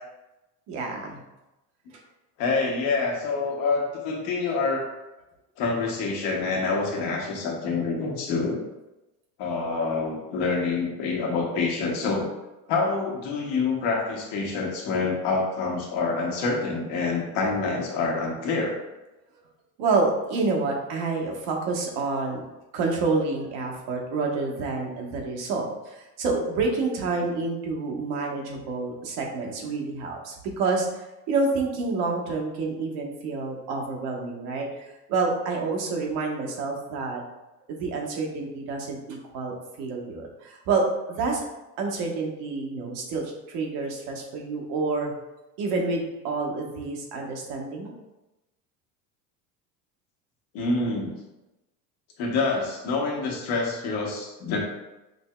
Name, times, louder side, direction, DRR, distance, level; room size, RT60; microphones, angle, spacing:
voice 1, 0.7-1.2 19.8-22.4 22.7-37.2 37.7-41.5 41.8-45.1 45.6-47.9, right 3 dB, 60° right, 0 dB, 1.1 m, -28 dB
voice 2, 2.4-4.9 5.6-8.6 9.4-12.3 12.7-18.8 50.5-51.1 52.2-54.6, left 4 dB, 60° left, -1 dB, 1.2 m, -26 dB
5.2 x 2.7 x 2.2 m, 1.0 s
hypercardioid pair, 90°, 46 cm